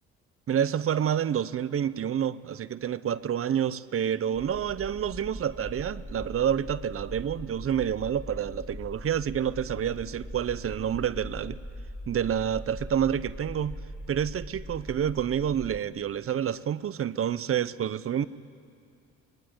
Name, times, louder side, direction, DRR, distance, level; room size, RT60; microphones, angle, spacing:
voice 1, 0.5-11.6 12.1-13.8 14.1-18.2, right 9 dB, 50° right, 16 dB, 0.7 m, -28 dB
sound 1, 4.3-15.8, equal, 5° left, 1.6 m, -41 dB
23.5 x 19.5 x 9.4 m, 2.3 s
cardioid pair, 90°, 30 cm